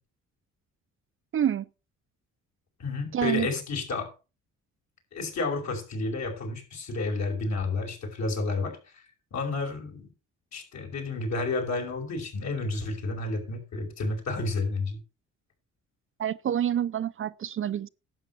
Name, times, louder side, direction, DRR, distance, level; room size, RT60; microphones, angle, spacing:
voice 1, 1.3-1.6 3.1-3.5 16.2-17.9, right 10 dB, 45° right, 0.5 m, -27 dB
voice 2, 2.8-4.1 5.1-9.0 9.3-10.1 10.5-15.0, left 3 dB, 65° left, 5.8 m, -31 dB
11.5 x 8.0 x 5.6 m
cardioid pair, 90°, 30 cm